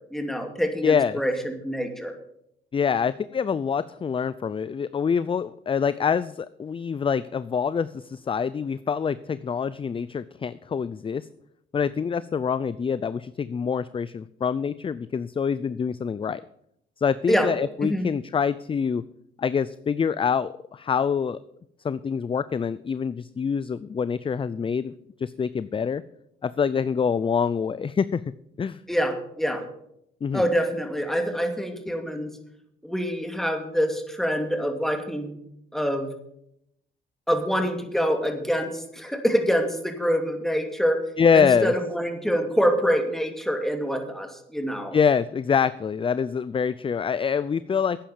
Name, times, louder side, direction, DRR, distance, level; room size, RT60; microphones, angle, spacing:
voice 1, 0.1-2.1 17.3-17.5 17.8-18.0 28.9-29.6 30.3-32.3 32.8-35.4 35.7-36.1 37.3-41.0 41.3-45.0, equal, ahead, 5 dB, 2.5 m, -25 dB
voice 2, 0.8-1.2 2.7-11.3 11.7-16.4 17.0-19.0 19.4-21.4 21.8-24.9 25.2-26.0 26.4-28.2 28.6-28.8 30.2-30.4 41.2-41.7 44.9-48.0, left 6 dB, 25° left, 17 dB, 0.4 m, -25 dB
11.5 x 9.1 x 7.1 m, 0.76 s
cardioid pair, 90°, 20 cm